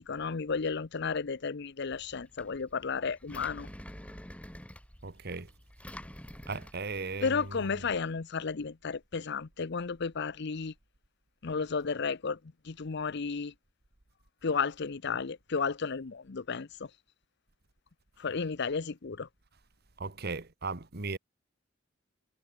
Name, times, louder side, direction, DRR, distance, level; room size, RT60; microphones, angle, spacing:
voice 1, 0.0-3.7 7.2-10.7 11.4-12.4 12.6-13.5 14.4-16.9 18.2-19.3, left 5 dB, 60° left, 0.7 m, -33 dB
Engine, 1.9-8.0, equal, 5° left, 2.6 m, -48 dB
voice 2, 5.0-5.5 6.5-7.7 20.0-21.2, right 3 dB, 55° right, 1.6 m, -37 dB
head